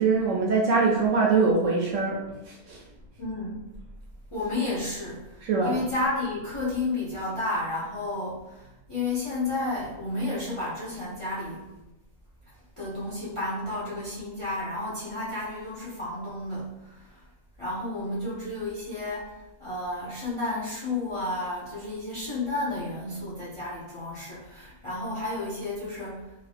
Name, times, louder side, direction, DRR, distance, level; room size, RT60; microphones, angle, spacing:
voice 1, 0.0-2.8 5.4-5.8, right 4 dB, 70° right, -3 dB, 0.7 m, -23 dB
voice 2, 3.2-3.7 4.3-11.7 12.8-16.7 17.6-19.3 19.6-26.3, left 2 dB, 55° left, -8 dB, 0.3 m, -32 dB
2.8 x 2.5 x 3.3 m, 0.98 s
omnidirectional pair, 1.7 m